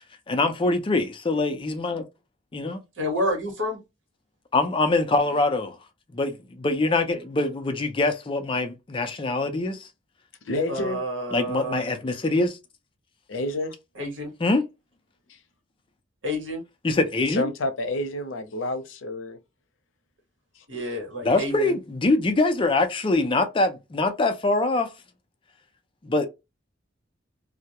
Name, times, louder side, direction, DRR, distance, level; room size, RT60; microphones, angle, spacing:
voice 1, 0.3-2.0 2.5-2.8 4.5-5.8 6.1-9.9 11.3-12.6 14.4-14.6 16.8-17.5 21.2-24.9 26.0-26.3, left 2 dB, 25° left, 0.4 m, -24 dB
voice 2, 3.0-3.8 10.7-11.8 14.0-14.3 16.2-16.6 20.7-21.7, equal, 85° right, 1.1 m, -29 dB
voice 3, 10.4-11.0 13.3-13.7 17.3-19.4 20.6-20.7, left 1 dB, 90° left, 0.6 m, -29 dB
2.2 x 2.0 x 2.8 m
head